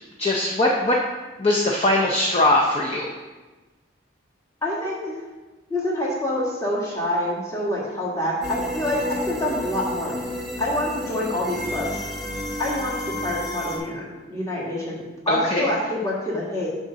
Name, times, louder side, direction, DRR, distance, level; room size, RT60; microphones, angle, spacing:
voice 1, 0.2-1.0 1.4-3.1 15.3-15.7, left 1 dB, 30° left, -1 dB, 0.5 m, -21 dB
voice 2, 4.6-5.1 5.7-10.1 10.6-12.0 12.6-16.7, left 1 dB, 15° left, -6 dB, 1.6 m, -26 dB
sound 1, 8.4-13.8, left 1 dB, ahead, 1.0 m, -31 dB
6.5 x 3.6 x 6.1 m, 1.2 s
head